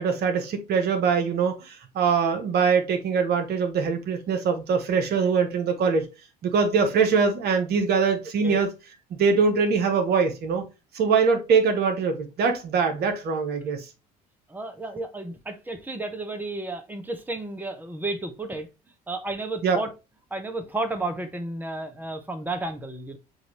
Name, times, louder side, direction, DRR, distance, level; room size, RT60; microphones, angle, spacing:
voice 1, 0.0-6.1 6.4-8.7 9.1-10.6 10.9-13.9 19.6-19.8, right 5 dB, 55° right, 1.0 m, -23 dB
voice 2, 14.5-18.7 19.1-19.9 20.3-23.2, right 2 dB, 10° right, 1.0 m, -32 dB
6.2 x 2.7 x 3.0 m
hypercardioid pair, 60°, 20 cm